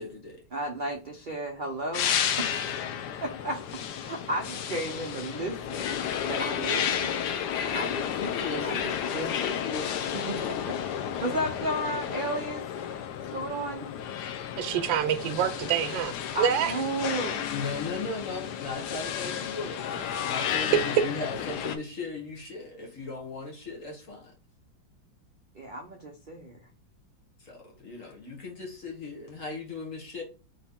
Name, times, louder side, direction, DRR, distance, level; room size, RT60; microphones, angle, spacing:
voice 1, 0.0-0.4 8.1-8.9 9.4-10.1 17.5-24.3 27.4-30.2, left 4 dB, 45° left, 1.5 m, -37 dB
voice 2, 0.5-2.5 3.2-3.6 3.9-5.9 6.3-7.1 7.7-8.1 8.6-9.5 10.1-10.6 11.1-12.6 13.3-13.9 16.3-17.5 18.8-19.1 25.5-26.6, right 1 dB, 55° right, 0.5 m, -33 dB
sound 1, 1.9-21.8, left 8 dB, 70° left, 1.1 m, -32 dB
voice 3, 14.6-16.7 20.7-20.8, right 9 dB, 85° right, 1.4 m, -26 dB
4.0 x 3.1 x 3.5 m
omnidirectional pair, 2.0 m